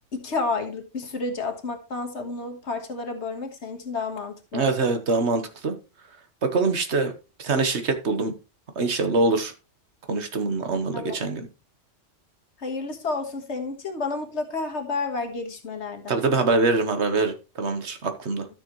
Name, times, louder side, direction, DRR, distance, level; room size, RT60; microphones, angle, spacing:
voice 1, 0.1-4.9 10.9-11.2 12.6-16.2, left 3 dB, 65° left, 5 dB, 1.8 m, -31 dB
voice 2, 4.5-5.7 6.4-7.1 7.4-8.3 8.8-9.5 10.1-11.5 16.1-18.5, right 3 dB, 65° right, 7 dB, 1.5 m, -24 dB
12.5 x 6.6 x 3.1 m, 0.30 s
omnidirectional pair, 1.2 m